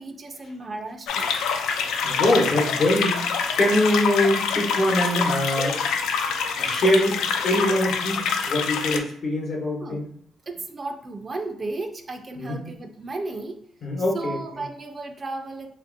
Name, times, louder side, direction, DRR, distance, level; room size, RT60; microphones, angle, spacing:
voice 1, 0.0-1.4 9.8-10.0 10.5-13.6 14.1-15.7, right 2 dB, 35° right, 6 dB, 0.3 m, -34 dB
sound 1, 1.1-9.0, left 6 dB, 85° left, 0.3 m, -26 dB
voice 2, 2.0-5.8 6.6-10.1 12.4-12.6 13.8-14.4, left 1 dB, 55° left, -1 dB, 1.0 m, -23 dB
3.0 x 2.5 x 2.5 m, 0.69 s
cardioid pair, 90°, 0 cm